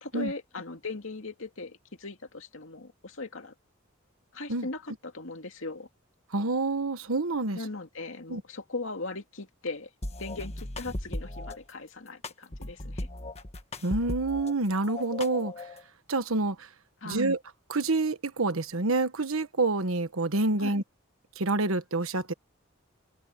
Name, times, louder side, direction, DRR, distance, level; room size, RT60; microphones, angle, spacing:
voice 1, 0.0-3.5 4.3-5.9 7.5-9.9 10.2-13.1 17.0-17.3 20.6-20.8, left 3 dB, 70° left, 2.6 m, -39 dB
voice 2, 6.3-7.6 8.3-8.4 13.8-15.5 16.1-16.7 17.0-17.4 17.7-20.8 21.4-22.3, right 2 dB, 85° right, 1.3 m, -27 dB
sound 1, 10.0-11.6 12.2-14.5 14.8-15.8, left 1 dB, 30° left, 1.5 m, -37 dB
head